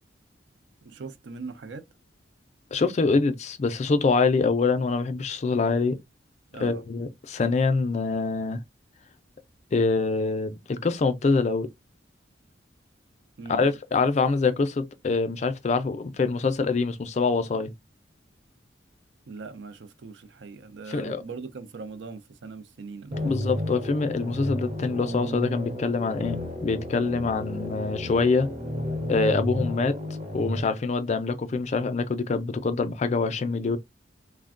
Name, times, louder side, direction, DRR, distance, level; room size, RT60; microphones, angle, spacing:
voice 1, 0.8-1.9 6.5-6.8 13.4-13.6 19.3-23.2, right 4 dB, 75° right, 0.5 m, -40 dB
voice 2, 2.7-6.0 6.6-8.6 9.7-11.7 13.5-17.7 20.9-21.2 23.2-28.5 29.1-33.8, left 4 dB, 40° left, 0.4 m, -25 dB
sound 1, 23.1-30.6, left 1 dB, 40° right, 0.8 m, -32 dB
3.3 x 2.1 x 2.4 m
head